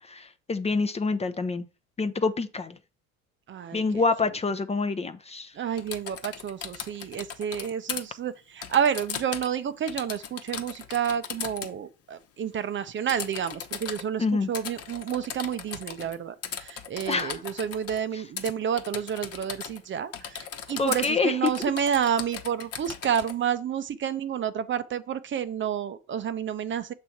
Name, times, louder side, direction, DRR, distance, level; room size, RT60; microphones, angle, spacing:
voice 1, 0.0-1.6 2.0-2.8 3.7-5.5 14.2-14.5 17.1-17.4 18.1-18.2 20.8-21.7, left 4 dB, 20° left, 0.6 m, -27 dB
voice 2, 3.5-4.0 5.6-26.9, right 8 dB, 40° right, 0.6 m, -30 dB
Typing, 5.8-8.0 8.6-9.6 9.9-11.7 13.1-14.0 14.5-16.2 16.4-18.0 18.4-18.5 18.8-19.8 20.1-21.1 21.5-23.3, left 7 dB, 50° left, 1.0 m, -37 dB
6.7 x 3.2 x 5.7 m
supercardioid pair, 85°, 31 cm